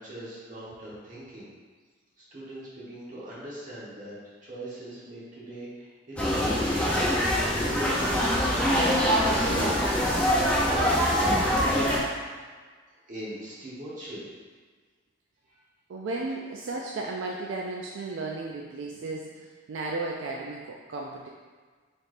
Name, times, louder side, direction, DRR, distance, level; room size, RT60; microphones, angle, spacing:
voice 1, 0.0-1.5 2.2-4.1 4.5-8.6 9.3-11.9 13.1-14.2, right 1 dB, 45° right, -8 dB, 1.2 m, -40 dB
sound 1, 6.2-12.0, equal, 5° left, 0.6 m, -24 dB
voice 2, 15.9-21.3, right 3 dB, 80° right, -1 dB, 0.3 m, -34 dB
4.1 x 3.4 x 2.5 m, 1.5 s
head